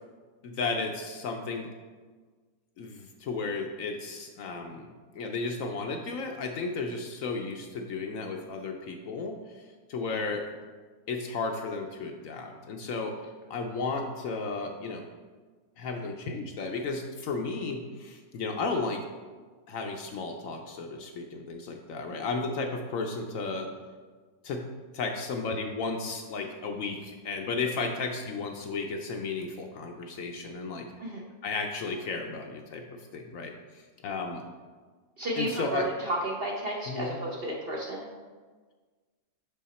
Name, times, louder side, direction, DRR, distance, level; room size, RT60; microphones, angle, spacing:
voice 1, 0.4-1.7 2.8-9.6 9.9-10.4 11.1-13.1 13.5-15.0 15.8-19.0 19.7-23.7 24.4-24.6 24.9-30.9 31.4-32.8 33.1-34.4 35.4-35.8 36.9-37.1, left 4 dB, 65° left, 3 dB, 0.9 m, -34 dB
voice 2, 35.2-38.1, right 1 dB, 50° right, -2 dB, 0.8 m, -32 dB
5.9 x 5.6 x 4.2 m, 1.4 s
omnidirectional pair, 1.7 m